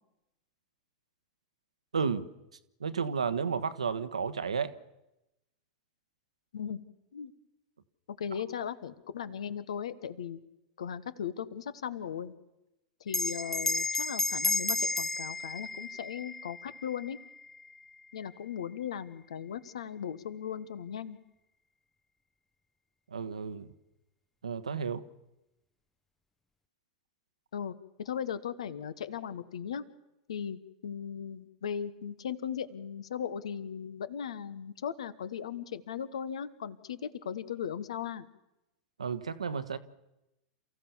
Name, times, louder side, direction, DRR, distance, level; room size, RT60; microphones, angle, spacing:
voice 1, 1.9-2.3 2.8-4.7 23.1-23.7 24.4-25.0 39.0-39.8, right 6 dB, 85° right, 1.2 m, -32 dB
voice 2, 8.1-10.4 10.8-12.3 13.0-17.2 18.1-21.2 27.5-29.8 30.3-38.3, left 8 dB, 75° left, 1.3 m, -37 dB
Bell, 13.1-17.9, left 3 dB, 10° left, 0.8 m, -33 dB
29.0 x 15.0 x 7.2 m
hypercardioid pair, 90°, 3 cm